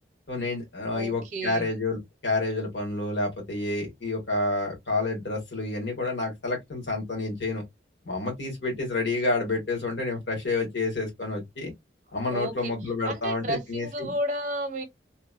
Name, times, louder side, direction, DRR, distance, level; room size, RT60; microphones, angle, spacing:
voice 1, 0.3-7.6 8.0-11.7 12.1-13.9, left 2 dB, 80° left, 1.4 m, -29 dB
voice 2, 0.9-1.7 12.3-12.7 13.0-14.8, equal, 40° right, 0.7 m, -32 dB
3.0 x 2.1 x 2.3 m
head